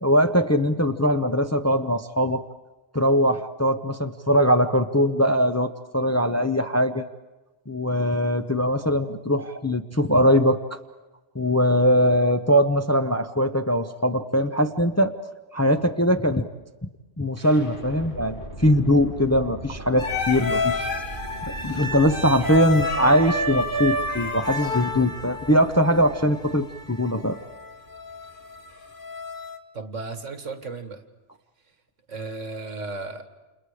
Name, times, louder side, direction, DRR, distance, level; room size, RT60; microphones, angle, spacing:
voice 1, 0.0-2.4 2.9-7.0 7.7-10.6 11.3-15.1 15.5-16.5 17.2-20.9 21.6-27.4, equal, 15° left, 7 dB, 0.6 m, -21 dB
sound 1, 17.4-29.2, right 1 dB, 85° left, 8.5 m, -41 dB
sound 2, 20.0-29.6, left 2 dB, 45° left, 1.3 m, -30 dB
voice 2, 29.7-31.0 32.1-33.2, right 3 dB, 85° right, 8 dB, 2.0 m, -34 dB
29.0 x 28.5 x 5.0 m, 1.2 s
omnidirectional pair, 1.2 m